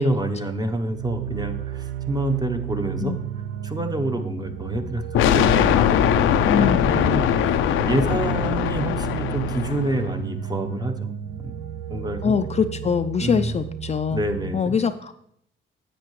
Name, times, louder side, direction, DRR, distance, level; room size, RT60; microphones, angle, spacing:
voice 1, 0.0-3.1 3.6-5.0 5.3-6.0 6.6-7.2 7.8-11.1 11.4-11.5 11.9-12.4 13.2-13.6 14.1-14.8, right 1 dB, 20° right, 6 dB, 0.9 m, -27 dB
sound 1, 0.9-14.6, right 10 dB, 75° right, 0.5 m, -33 dB
sound 2, 5.1-10.0, left 9 dB, 85° left, 0.5 m, -21 dB
voice 2, 6.4-6.9 12.2-14.2 14.5-15.1, left 6 dB, 35° left, 9 dB, 0.4 m, -23 dB
10.0 x 7.7 x 3.2 m, 0.72 s
cardioid pair, 90°, 20 cm